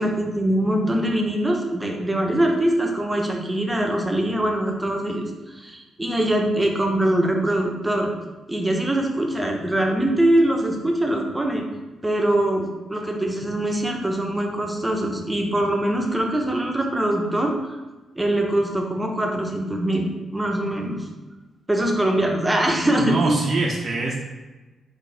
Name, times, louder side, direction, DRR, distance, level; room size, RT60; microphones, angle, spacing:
voice 1, 0.0-8.1 8.5-11.7 12.0-17.5 18.2-21.0 21.7-23.4, right 1 dB, 10° right, 1 dB, 0.6 m, -23 dB
voice 2, 23.0-24.1, right 2 dB, 55° right, -2 dB, 0.5 m, -24 dB
3.9 x 2.5 x 3.8 m, 1.1 s
cardioid pair, 100°, 0 cm